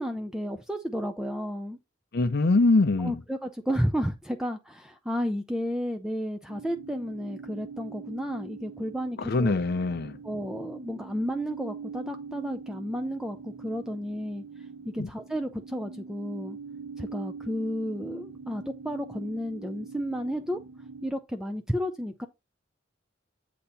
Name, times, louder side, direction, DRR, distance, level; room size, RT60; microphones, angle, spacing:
voice 1, 0.0-1.8 3.0-9.6 10.2-14.4 14.9-16.6 17.0-20.6 21.0-22.3, equal, 5° right, 0.4 m, -32 dB
voice 2, 2.1-3.1 9.2-10.1 15.0-15.1, left 3 dB, 55° left, 0.6 m, -23 dB
sound 1, 6.5-21.1, right 5 dB, 70° right, 1.1 m, -43 dB
8.5 x 2.9 x 5.6 m
head